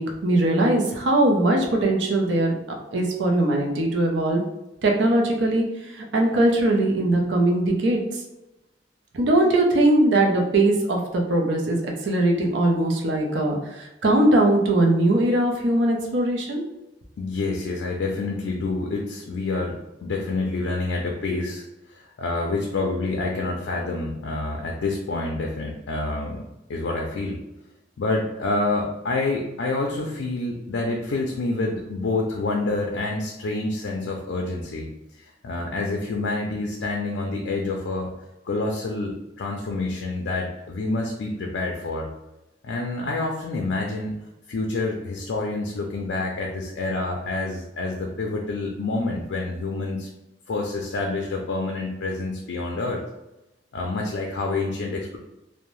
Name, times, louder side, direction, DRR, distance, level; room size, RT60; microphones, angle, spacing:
voice 1, 0.0-2.6 2.9-4.4 4.8-8.0 9.1-16.6, right 1 dB, 80° right, 1 dB, 0.5 m, -21 dB
voice 2, 17.2-26.4 26.7-27.4 28.0-38.1 38.4-42.1 42.6-44.2 44.5-50.1 50.5-53.0 53.7-55.2, left 2 dB, 85° left, 0 dB, 0.4 m, -28 dB
2.6 x 2.1 x 3.0 m, 0.94 s
head